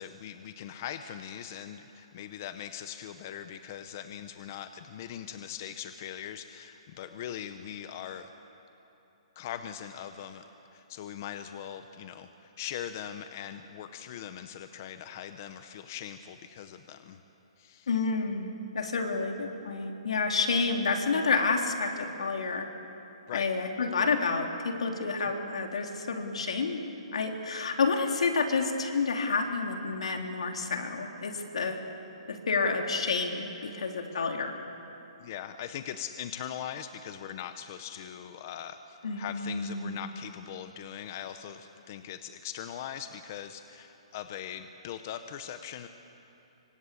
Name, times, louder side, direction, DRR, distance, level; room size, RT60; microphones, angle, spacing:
voice 1, 0.0-8.3 9.4-17.2 17.6-17.9 23.3-23.5 35.2-45.9, left 9 dB, 25° left, 9 dB, 0.7 m, -41 dB
voice 2, 17.9-22.7 23.3-26.8 27.1-31.8 32.3-34.5 39.0-40.0, left 4 dB, 70° left, 3 dB, 3.6 m, -29 dB
26.5 x 24.5 x 8.6 m, 3.0 s
hypercardioid pair, 180°, 3 cm